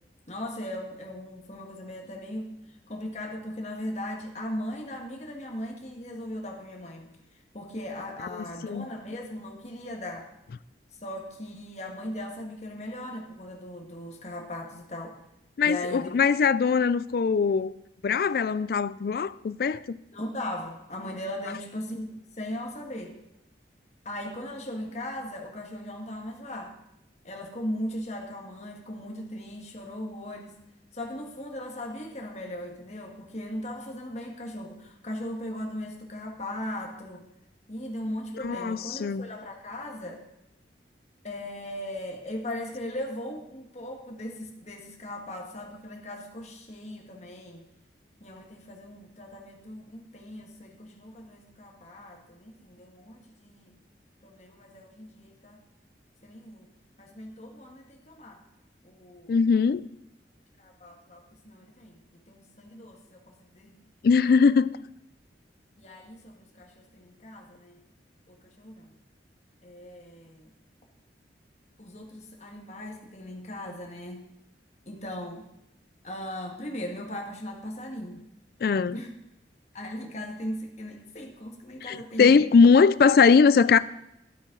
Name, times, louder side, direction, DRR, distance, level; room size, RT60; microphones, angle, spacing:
voice 1, 0.3-2.5 2.9-7.1 7.5-10.3 11.0-15.2 15.6-16.2 20.1-23.2 24.0-26.8 27.2-30.6 30.9-37.2 37.7-40.2 41.2-47.7 48.2-53.7 54.2-55.6 56.2-56.7 57.0-58.4 58.8-59.3 60.6-62.0 62.3-63.8 65.8-67.8 68.3-68.9 69.6-70.5 71.8-74.3 74.8-75.5 76.0-78.2 78.9-79.1 79.7-82.4, left 1 dB, 40° left, 1.6 m, -38 dB
voice 2, 8.4-8.9 15.6-17.7 18.0-20.0 38.4-39.3 59.3-59.9 64.0-64.7 78.6-79.0 81.9-83.8, left 5 dB, 55° left, 0.3 m, -21 dB
12.5 x 8.5 x 3.9 m
head